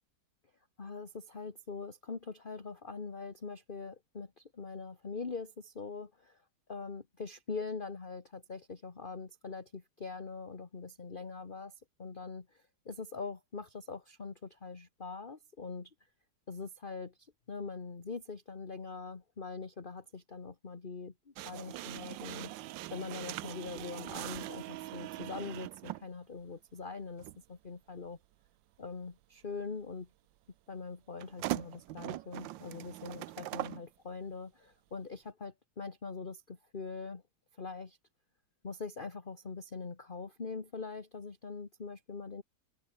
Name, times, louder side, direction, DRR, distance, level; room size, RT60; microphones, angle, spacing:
voice 1, 0.8-6.4 6.7-11.7 12.0-15.9 16.5-22.5 22.9-28.2 28.8-30.1 30.7-37.2 37.6-38.0 38.6-42.4, left 4 dB, 30° left, 1.6 m, -43 dB
sound 1, 21.4-26.1 27.2-27.4 31.2-33.8, right 15 dB, 85° right, 1.4 m, -41 dB
omnidirectional pair, 2.0 m